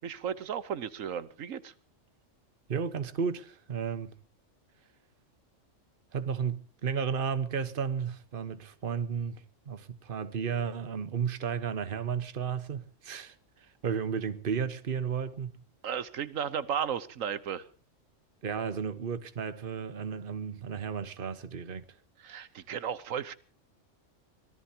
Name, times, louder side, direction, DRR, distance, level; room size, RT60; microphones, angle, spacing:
voice 1, 0.0-1.7 15.8-17.6 22.2-23.3, right 8 dB, 90° right, 1.4 m, -34 dB
voice 2, 2.7-4.1 6.1-15.5 18.4-22.0, right 6 dB, 45° right, 1.3 m, -33 dB
24.5 x 18.5 x 2.8 m
omnidirectional pair, 1.3 m